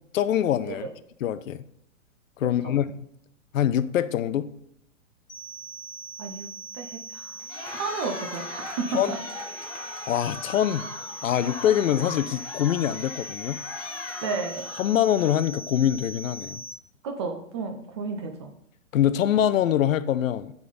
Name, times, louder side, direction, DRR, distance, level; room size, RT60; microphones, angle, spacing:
voice 1, 0.1-0.9 1.2-1.6 2.4-2.8 3.5-4.5 8.9-9.2 10.1-10.9 11.2-13.6 14.8-16.6 18.9-20.5, left 10 dB, 80° left, 0.5 m, -24 dB
sound 1, 5.3-16.7, right 1 dB, 55° left, 1.5 m, -40 dB
voice 2, 6.7-7.4 7.7-9.2 14.2-14.7 17.0-18.5, right 4 dB, 25° right, 0.4 m, -32 dB
Cheering, 7.4-15.6, left 3 dB, 30° left, 1.9 m, -40 dB
9.3 x 3.8 x 3.9 m
hypercardioid pair, 140°, 39 cm